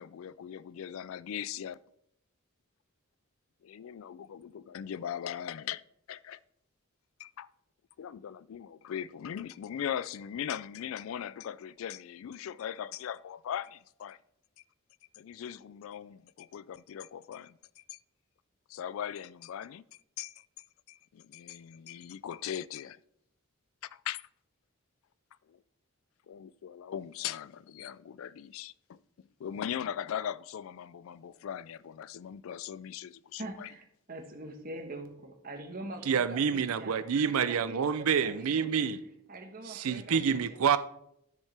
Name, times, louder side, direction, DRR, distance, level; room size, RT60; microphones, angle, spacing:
voice 1, 0.0-1.8 3.6-5.8 6.1-6.4 7.2-7.5 8.0-14.2 15.2-18.0 18.7-19.8 20.2-20.4 20.9-23.0 23.8-24.2 25.5-25.6 26.3-29.0 29.4-33.7, left 9 dB, 70° left, 0.3 m, -39 dB
voice 2, 33.4-37.0 37.5-38.8 39.3-40.6, right 1 dB, 40° right, 1.2 m, -44 dB
voice 3, 36.0-39.0 39.6-40.8, right 7 dB, 80° right, 0.5 m, -28 dB
13.0 x 6.5 x 3.3 m
head